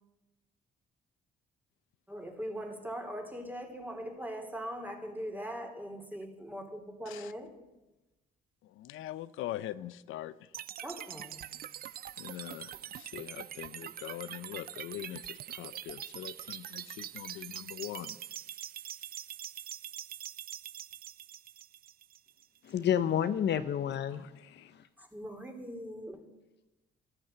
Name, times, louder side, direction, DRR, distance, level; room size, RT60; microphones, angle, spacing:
voice 1, 2.1-7.6 10.8-11.4 25.0-26.2, equal, 10° right, 3 dB, 3.3 m, -41 dB
voice 2, 8.6-10.6 12.2-18.2 24.1-24.7, left 13 dB, 85° left, 15 dB, 0.6 m, -43 dB
sound 1, 10.5-22.6, right 11 dB, 50° right, 0.4 m, -44 dB
voice 3, 22.6-24.2 24.5-24.8, left 9 dB, 60° left, 11 dB, 0.8 m, -30 dB
13.5 x 12.0 x 7.9 m, 1.0 s
cardioid pair, 90°, 20 cm